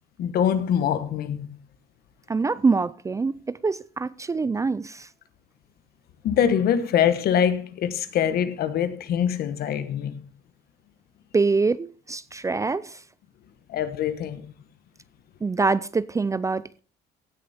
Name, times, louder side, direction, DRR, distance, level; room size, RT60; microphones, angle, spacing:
voice 1, 0.2-1.5 6.2-10.2 13.7-14.5, left 9 dB, 65° left, 1.2 m, -24 dB
voice 2, 2.3-5.1 11.3-13.0 15.4-16.8, right 4 dB, 20° right, 0.4 m, -25 dB
16.5 x 6.4 x 4.2 m
cardioid pair, 110°, 17 cm